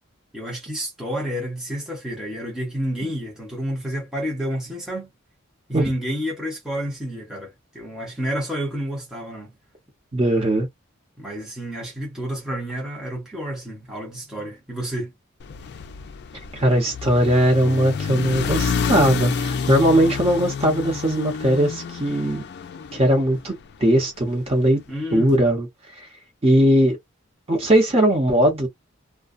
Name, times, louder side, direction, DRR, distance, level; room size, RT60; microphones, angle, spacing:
voice 1, 0.3-5.1 5.7-9.5 11.2-15.1 24.9-25.5, equal, 5° right, 0.9 m, -29 dB
voice 2, 10.1-10.7 16.5-22.4 22.9-24.8 25.1-25.7 26.4-27.0 27.5-28.7, right 1 dB, 30° right, 1.0 m, -19 dB
sound 1, 15.4-23.8, left 6 dB, 50° left, 0.4 m, -29 dB
2.2 x 2.2 x 2.5 m
head